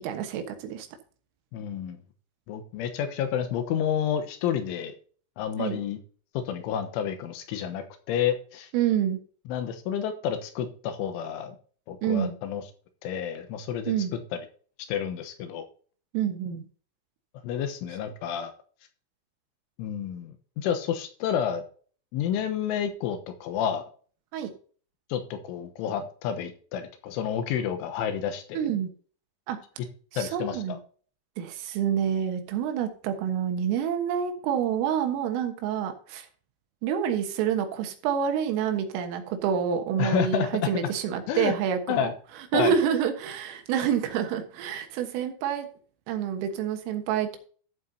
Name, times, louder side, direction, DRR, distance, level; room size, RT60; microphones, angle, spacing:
voice 1, 0.0-0.9 5.6-5.8 8.7-9.2 12.0-12.3 13.9-14.1 16.1-16.6 24.3-24.5 28.6-28.9 29.5-29.6 30.1-30.8 31.4-36.3 36.8-42.1 42.5-45.7 46.1-47.4, right 8 dB, 90° right, 6 dB, 4.0 m, -27 dB
voice 2, 1.5-2.0 2.5-5.0 5.4-6.0 6.4-8.7 9.5-11.6 11.9-12.6 13.0-13.9 14.9-15.7 17.4-18.5 19.8-21.6 22.1-23.8 25.1-28.6 30.2-30.8 40.0-40.5 41.3-41.5 41.9-42.1 42.5-42.8, left 8 dB, 80° left, 7 dB, 3.4 m, -30 dB
13.5 x 7.6 x 2.8 m, 0.43 s
omnidirectional pair, 5.7 m